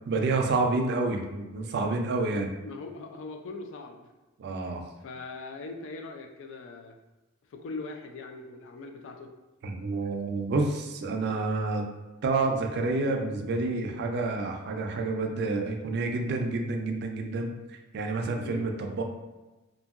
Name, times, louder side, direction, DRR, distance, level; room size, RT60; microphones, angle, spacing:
voice 1, 0.1-2.5 4.4-4.8 9.6-11.8 12.2-19.0, right 3 dB, 50° right, 3 dB, 0.4 m, -29 dB
voice 2, 2.6-4.1 5.0-7.0 7.5-9.3 18.4-18.7, left 3 dB, 60° left, 4 dB, 0.4 m, -40 dB
2.7 x 2.6 x 2.4 m, 1.1 s
head